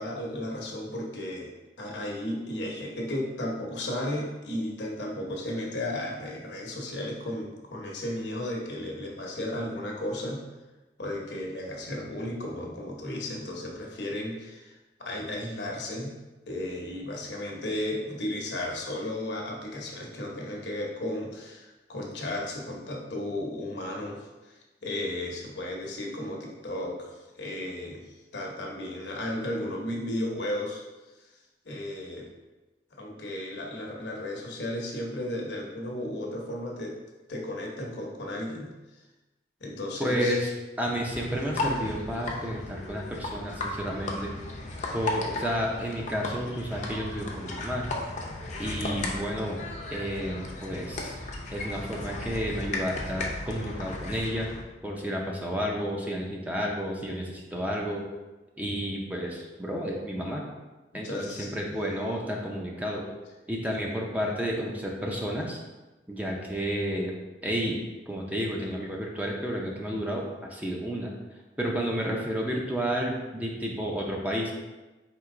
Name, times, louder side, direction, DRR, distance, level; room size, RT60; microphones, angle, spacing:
voice 1, 0.0-1.5 1.8-10.4 11.0-16.1 16.5-24.5 24.8-30.8 31.6-32.3 33.0-36.9 37.3-38.7 39.6-40.5 44.8-45.0 61.0-61.8, left 1 dB, 65° left, -1 dB, 0.9 m, -34 dB
voice 2, 40.0-40.5 40.8-44.3 44.9-47.9 48.6-49.6 49.9-51.1 51.5-54.5 54.8-58.1 58.6-60.4 60.9-63.1 63.5-65.6 66.1-67.1 67.4-67.8 68.1-71.1 71.6-74.5, equal, 10° right, -1 dB, 0.5 m, -31 dB
sound 1, 41.1-54.6, left 2 dB, 40° left, 0.6 m, -35 dB
4.5 x 2.9 x 3.7 m, 1.1 s
head